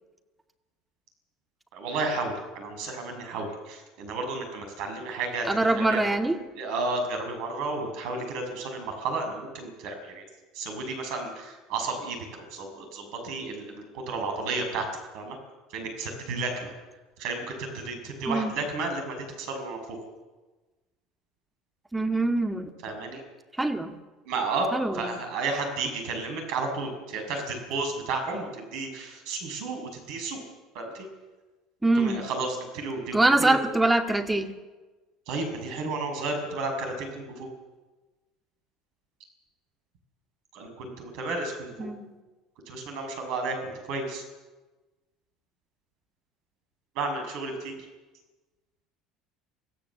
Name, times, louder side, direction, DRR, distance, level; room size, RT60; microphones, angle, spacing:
voice 1, 1.7-5.5 5.7-6.0 6.5-10.2 10.5-14.9 15.1-15.4 15.7-16.7 17.2-19.8 22.8-23.2 24.3-30.4 30.7-31.1 31.9-33.6 35.3-37.5 40.5-41.9 42.7-44.2 46.9-47.9, right 3 dB, 60° right, 4 dB, 6.5 m, -32 dB
voice 2, 5.5-6.4 18.3-18.5 21.9-22.7 23.6-24.0 24.7-25.2 31.8-32.3 33.1-34.5 41.8-42.1, right 2 dB, 10° right, 6 dB, 2.2 m, -24 dB
25.5 x 16.0 x 7.3 m, 1.2 s
hypercardioid pair, 65°, 0 cm